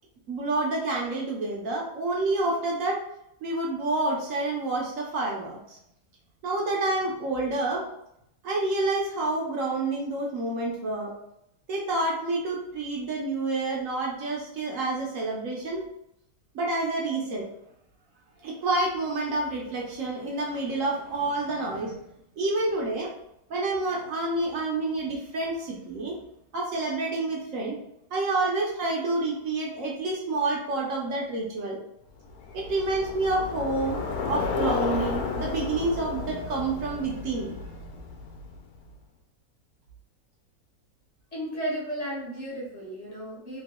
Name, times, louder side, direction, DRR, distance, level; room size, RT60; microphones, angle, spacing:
voice 1, 0.3-3.0 3.4-5.8 6.4-7.9 8.4-11.1 11.7-15.9 16.5-17.4 18.4-21.9 22.4-23.1 23.5-26.2 26.5-27.8 28.1-31.8 32.5-34.0 34.3-37.6, right 2 dB, 65° right, -2 dB, 1.0 m, -28 dB
Bicycle, 32.2-38.8, left 4 dB, 80° left, 1.1 m, -32 dB
voice 2, 41.3-43.6, equal, 30° left, -5 dB, 0.9 m, -34 dB
3.0 x 2.8 x 2.9 m, 0.78 s
omnidirectional pair, 1.6 m